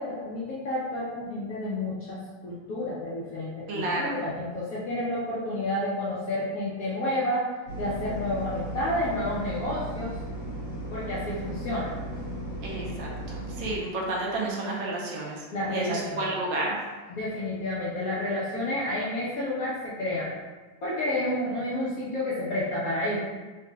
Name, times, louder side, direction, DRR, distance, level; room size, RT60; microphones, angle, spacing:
voice 1, 0.0-2.2 2.4-10.1 10.9-12.0 15.5-16.3 17.1-20.3 20.8-23.2, left 1 dB, 65° left, -8 dB, 0.9 m, -30 dB
voice 2, 3.7-4.2 12.6-16.8, right 2 dB, 75° right, -3 dB, 1.3 m, -31 dB
sound 1, 7.7-13.8, right 1 dB, 45° left, 1.6 m, -36 dB
3.9 x 3.2 x 2.2 m, 1.3 s
omnidirectional pair, 2.2 m